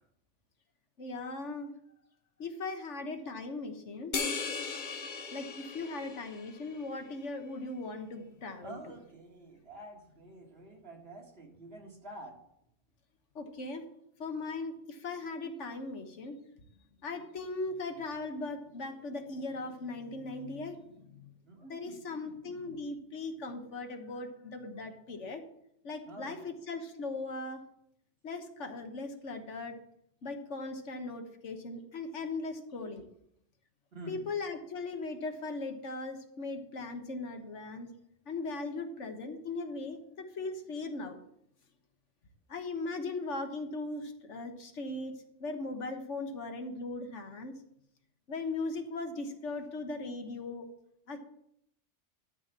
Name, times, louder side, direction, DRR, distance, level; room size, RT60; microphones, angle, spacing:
voice 1, 1.0-1.7 2.4-4.1 5.3-8.8 13.3-13.9 14.2-16.4 17.0-21.3 21.6-25.4 25.8-27.6 28.2-29.8 30.2-33.1 34.1-37.9 38.3-41.2 42.5-47.5 48.3-50.7 51.1-51.2, left 3 dB, 75° left, 5 dB, 1.6 m, -39 dB
sound 1, 4.1-6.8, left 4 dB, 45° left, 1.0 m, -37 dB
voice 2, 8.6-12.4 21.5-22.0 22.2-22.7 26.1-26.4 33.9-34.3, right 2 dB, 55° right, 1 dB, 2.2 m, -48 dB
12.5 x 4.2 x 7.4 m, 0.73 s
omnidirectional pair, 1.2 m